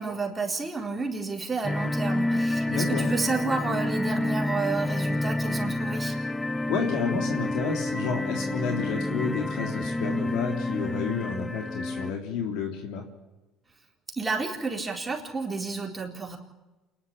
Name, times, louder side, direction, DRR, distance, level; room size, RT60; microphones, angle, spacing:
voice 1, 0.0-6.1 14.2-16.4, right 4 dB, 15° right, 0 dB, 4.1 m, -30 dB
sound 1, 1.6-12.1, left 1 dB, 15° left, 0.6 m, -29 dB
voice 2, 2.6-3.1 6.7-13.0, left 5 dB, 70° left, 3 dB, 3.3 m, -30 dB
28.0 x 11.5 x 8.6 m, 1.1 s
supercardioid pair, 105°, 0 cm